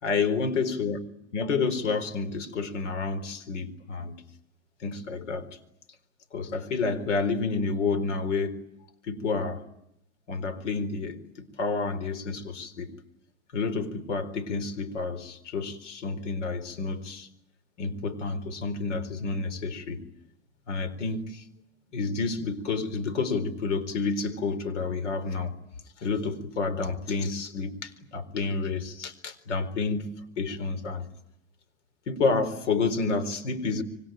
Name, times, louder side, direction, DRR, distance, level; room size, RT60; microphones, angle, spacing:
voice 1, 0.0-4.2 4.8-5.5 6.3-8.6 9.1-9.6 10.3-12.9 13.5-17.3 17.8-20.0 20.7-21.4 21.9-25.5 26.0-30.1 30.4-31.1 32.1-33.8, left 4 dB, 90° left, 12 dB, 4.3 m, -29 dB
26.5 x 24.5 x 9.2 m, 0.78 s
supercardioid pair, 115°, 35 cm